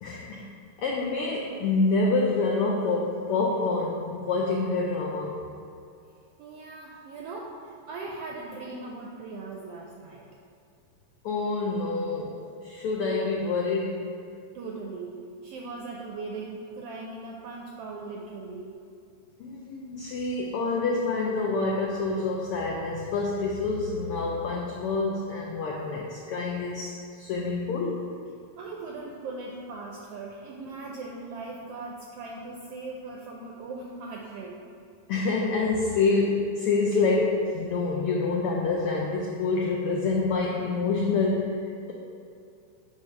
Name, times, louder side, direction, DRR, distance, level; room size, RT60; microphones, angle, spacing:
voice 1, 0.0-0.4 0.8-5.4 11.2-12.4 12.6-14.1 19.4-28.0 35.1-41.6, left 3 dB, 85° left, -2 dB, 1.2 m, -27 dB
voice 2, 6.4-10.3 14.5-18.7 28.6-34.6, right 3 dB, 80° right, -1 dB, 1.4 m, -39 dB
8.2 x 3.3 x 5.7 m, 2.5 s
omnidirectional pair, 3.3 m